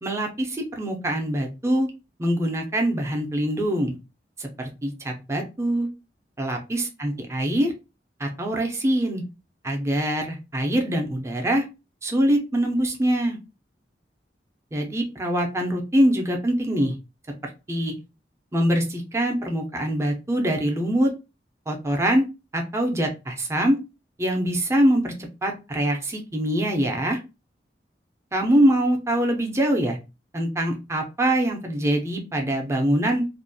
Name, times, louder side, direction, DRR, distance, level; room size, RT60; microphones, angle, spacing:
voice 1, 0.0-1.9 2.2-3.9 4.4-5.9 6.4-7.7 8.2-9.2 9.6-11.6 12.0-13.4 14.7-16.9 17.7-18.0 18.5-21.1 21.7-22.3 22.5-23.8 24.2-27.2 28.3-30.0 30.3-33.3, right 1 dB, 15° right, 2 dB, 0.5 m, -24 dB
2.5 x 2.2 x 2.6 m, 0.27 s
head